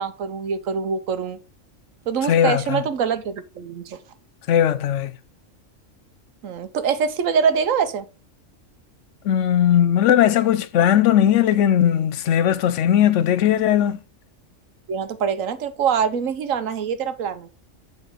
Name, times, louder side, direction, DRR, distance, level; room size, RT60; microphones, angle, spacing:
voice 1, 0.0-1.4 2.1-4.0 6.4-8.1 14.9-17.5, right 6 dB, 80° right, 1.3 m, -24 dB
voice 2, 2.3-2.8 4.5-5.1 9.2-14.0, left 10 dB, 75° left, 0.9 m, -18 dB
8.5 x 4.0 x 4.8 m
omnidirectional pair, 1.3 m